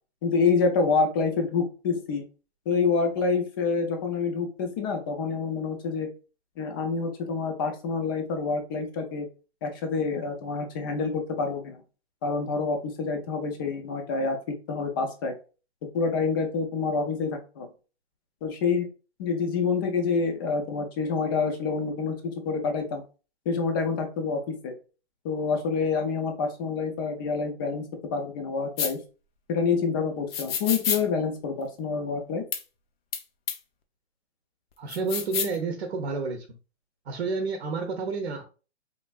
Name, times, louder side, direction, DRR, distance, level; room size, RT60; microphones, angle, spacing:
voice 1, 0.2-2.2 2.7-6.1 6.6-9.3 9.6-11.8 12.2-15.3 15.9-17.7 18.4-18.9 19.2-23.0 23.5-24.7 25.2-27.8 28.1-29.0 29.5-32.4, left 4 dB, 20° left, 5 dB, 0.4 m, -27 dB
sound 1, 28.8-28.9 30.3-31.0 32.5-32.6 33.1-33.2 33.5-33.6 34.9-35.6, left 7 dB, 60° left, 0.6 m, -28 dB
voice 2, 34.8-36.4 37.1-38.4, right 4 dB, 65° right, 4 dB, 0.7 m, -30 dB
3.2 x 2.5 x 2.3 m, 0.34 s
hypercardioid pair, 135°, 33 cm